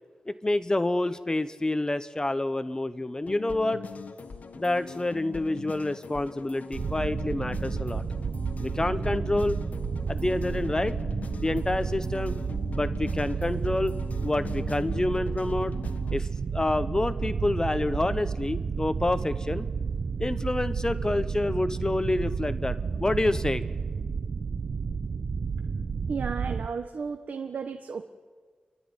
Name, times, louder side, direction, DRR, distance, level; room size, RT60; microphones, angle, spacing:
voice 1, 0.3-3.8 4.5-8.0 8.6-9.6 10.1-10.9 11.4-12.4 12.7-14.0 14.2-15.8 16.1-19.7 20.2-23.6, left 2 dB, 25° left, 13 dB, 1.0 m, -28 dB
sound 1, 3.3-16.2, left 5 dB, 65° left, 1.4 m, -41 dB
sound 2, 6.7-26.7, right 5 dB, 65° right, 0.8 m, -31 dB
voice 2, 26.1-28.0, right 5 dB, 80° right, 7 dB, 1.1 m, -33 dB
30.0 x 13.0 x 9.9 m, 1.5 s
cardioid pair, 65°, 3 cm